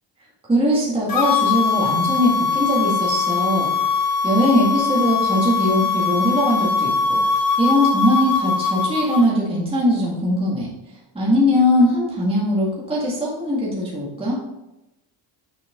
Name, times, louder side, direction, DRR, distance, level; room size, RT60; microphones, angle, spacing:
voice 1, 0.5-3.7 4.2-10.7 11.1-14.4, left 1 dB, 10° right, -6 dB, 1.9 m, -20 dB
sound 1, 1.1-9.2, left 5 dB, 50° left, 1.2 m, -21 dB
7.8 x 6.9 x 3.8 m, 0.96 s
cardioid pair, 155°, 45 cm